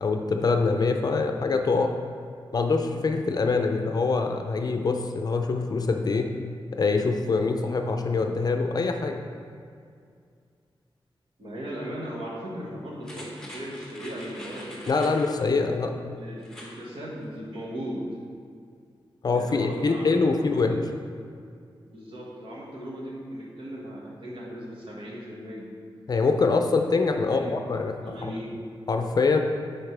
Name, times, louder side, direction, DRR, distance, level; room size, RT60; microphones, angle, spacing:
voice 1, 0.0-1.9 2.5-6.3 6.8-9.2 14.9-15.9 19.2-20.8 26.1-27.9 28.2-28.3 28.9-29.4, left 4 dB, 45° left, 5 dB, 0.5 m, -24 dB
voice 2, 11.4-15.2 16.2-18.0 19.3-20.8 21.8-25.7 27.1-27.6 28.0-28.7, equal, 70° right, -5 dB, 1.7 m, -37 dB
sound 1, 13.0-15.4 16.4-16.8 17.2-17.3, left 1 dB, 5° left, 1.1 m, -44 dB
10.5 x 4.2 x 3.3 m, 2.2 s
wide cardioid pair, 150°, 9 cm